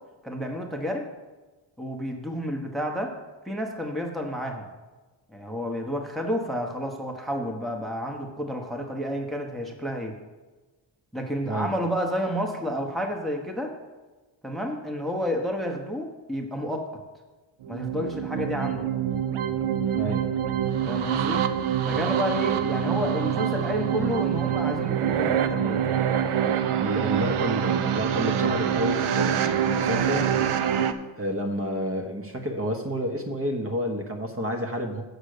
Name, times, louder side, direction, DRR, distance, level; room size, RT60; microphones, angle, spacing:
voice 1, 0.2-1.1 1.8-3.2 3.4-4.7 5.3-10.2 11.1-13.8 14.4-16.9 17.7-18.9 20.8-21.5 21.8-26.0, equal, ahead, 2 dB, 1.0 m, -30 dB
sound 1, 17.6-30.9, right 9 dB, 85° right, 0.7 m, -25 dB
voice 2, 26.8-30.3 31.2-35.0, equal, 25° right, 3 dB, 1.1 m, -30 dB
7.4 x 6.6 x 6.6 m, 1.2 s
cardioid pair, 95°, 50 cm